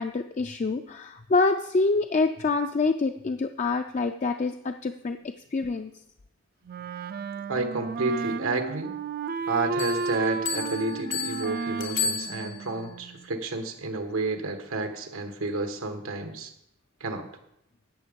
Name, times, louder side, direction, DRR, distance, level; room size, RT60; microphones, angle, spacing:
voice 1, 0.0-5.2 5.5-5.9, left 3 dB, 35° left, 7 dB, 0.4 m, -26 dB
Wind instrument woodwind instrument, 6.7-13.3, right 5 dB, 45° right, 0.4 m, -33 dB
voice 2, 7.5-8.9 9.5-16.5 17.0-17.3, right 3 dB, 90° right, 6 dB, 1.4 m, -30 dB
Bell, 9.8-12.9, left 5 dB, 75° left, 1.7 m, -33 dB
11.0 x 7.9 x 5.2 m, 0.81 s
head